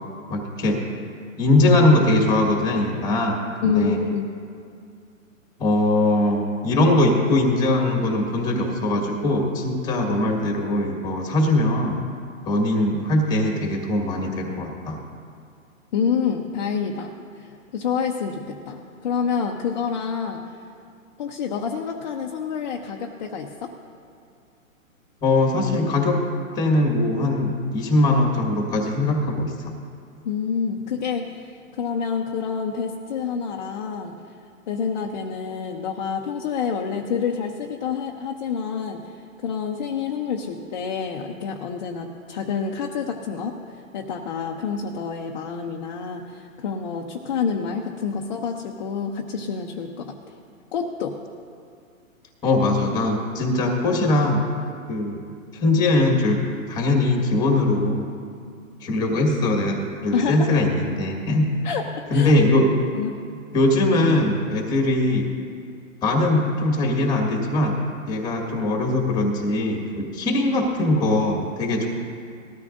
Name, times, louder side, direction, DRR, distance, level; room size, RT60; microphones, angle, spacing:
voice 1, 0.3-0.8 1.4-3.4 3.6-4.0 5.6-12.0 12.5-15.0 25.2-26.2 26.5-29.5 52.4-54.4 54.9-55.2 55.6-56.4 56.7-58.1 58.8-61.4 62.1-62.7 63.5-65.3 66.0-67.7 68.1-71.9, left 2 dB, 10° left, 1 dB, 1.7 m, -21 dB
voice 2, 3.6-4.3 15.9-20.5 21.2-23.7 30.2-34.1 34.7-50.4 50.7-51.2 60.1-60.5 61.6-62.3 62.9-63.2, left 6 dB, 35° left, 0 dB, 0.8 m, -28 dB
19.5 x 13.0 x 2.6 m, 2.3 s
hypercardioid pair, 155°, 41 cm